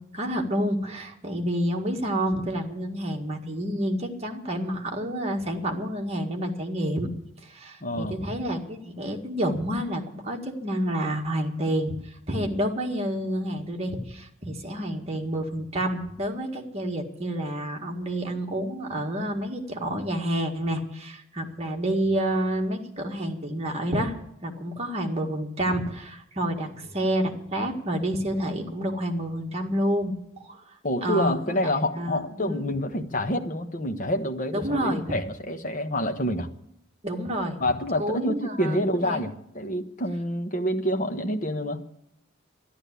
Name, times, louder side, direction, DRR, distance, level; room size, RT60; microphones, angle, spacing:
voice 1, 0.1-7.1 7.4-24.1 24.4-30.1 30.4-30.6 31.0-31.6 31.9-32.7 34.5-35.1 37.0-37.6 38.0-39.3, equal, 30° right, 1 dB, 1.9 m, -29 dB
voice 2, 7.8-8.1 30.8-36.5 37.6-41.8, left 1 dB, 40° left, 6 dB, 1.2 m, -27 dB
12.5 x 11.0 x 8.3 m, 0.77 s
head